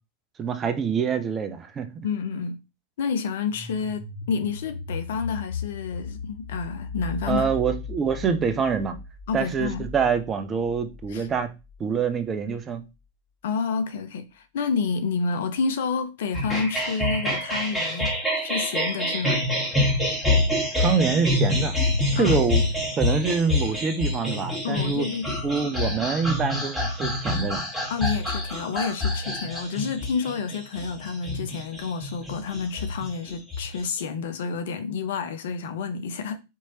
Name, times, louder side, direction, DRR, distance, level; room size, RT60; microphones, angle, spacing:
voice 1, 0.4-2.0 7.3-9.0 9.3-11.5 11.8-12.8 20.8-21.7 22.1-22.6 23.0-25.1 25.4-27.6, right 6 dB, 25° right, 0.7 m, -25 dB
voice 2, 2.0-2.6 3.0-7.5 9.3-9.9 11.1-11.3 13.4-19.4 22.1-22.4 24.6-25.2 27.9-36.4, left 5 dB, 55° left, 0.6 m, -29 dB
sound 1, 3.5-12.2, left 4 dB, 20° left, 1.3 m, -37 dB
sound 2, 16.3-34.0, left 1 dB, 5° left, 1.5 m, -26 dB
4.6 x 2.9 x 2.8 m
figure-of-eight pair, 90°, 0 cm